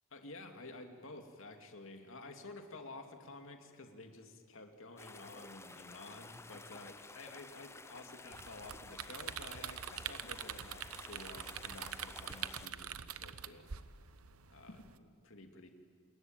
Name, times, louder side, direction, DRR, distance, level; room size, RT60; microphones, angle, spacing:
voice 1, 0.1-13.7 14.5-15.7, left 2 dB, 65° left, 5 dB, 2.6 m, -51 dB
sound 1, 5.0-12.7, left 3 dB, 10° left, 0.7 m, -53 dB
sound 2, 8.3-15.0, right 9 dB, 85° right, 0.9 m, -45 dB
28.0 x 20.5 x 9.1 m, 2.3 s
head